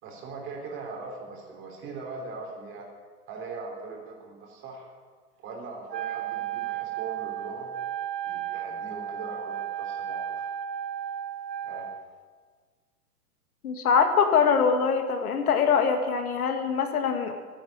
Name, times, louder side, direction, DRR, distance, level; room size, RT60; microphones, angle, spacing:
voice 1, 0.0-2.9 3.3-4.9 5.4-7.7 8.2-10.5 11.6-11.9, right 4 dB, 25° right, 0 dB, 3.6 m, -40 dB
Wind instrument woodwind instrument, 5.9-12.1, right 10 dB, 85° right, 1.0 m, -34 dB
voice 2, 13.6-17.3, left 6 dB, 65° left, 6 dB, 2.1 m, -23 dB
12.5 x 10.5 x 9.1 m, 1.5 s
hypercardioid pair, 145°, 48 cm